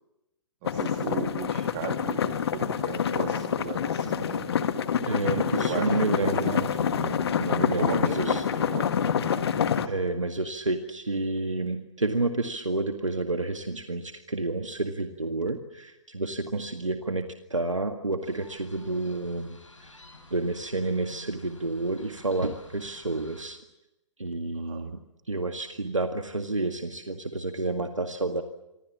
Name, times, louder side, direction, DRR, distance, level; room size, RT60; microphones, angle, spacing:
sound 1, 0.6-9.9, left 7 dB, 55° left, 1.8 m, -27 dB
voice 1, 0.6-2.2 2.5-4.5 5.5-6.7 7.2-7.4 7.8-9.9 24.5-24.9, right 11 dB, 30° right, 6 dB, 1.8 m, -37 dB
voice 2, 5.1-8.4 9.9-19.6 19.8-19.9 20.3-23.6 24.2-25.0 25.3-28.4, right 2 dB, 85° right, 7 dB, 1.9 m, -30 dB
sound 2, 18.2-23.4, left 1 dB, 80° left, 7.9 m, -51 dB
27.0 x 25.5 x 7.4 m, 0.92 s
figure-of-eight pair, 125°, 16 cm